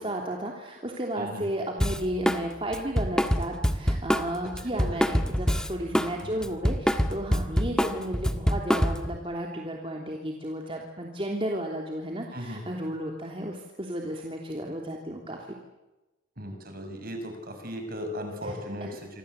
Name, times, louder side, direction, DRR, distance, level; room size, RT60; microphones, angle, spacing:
voice 1, 0.0-15.4 18.4-18.9, right 1 dB, 30° right, 0 dB, 3.2 m, -33 dB
Drum kit, 1.8-2.4 2.7-6.1 6.4-9.2, equal, 5° left, 1.5 m, -25 dB
voice 2, 12.3-12.6 16.4-19.2, equal, 50° right, 5 dB, 7.0 m, -37 dB
27.0 x 26.0 x 8.3 m, 1.0 s
head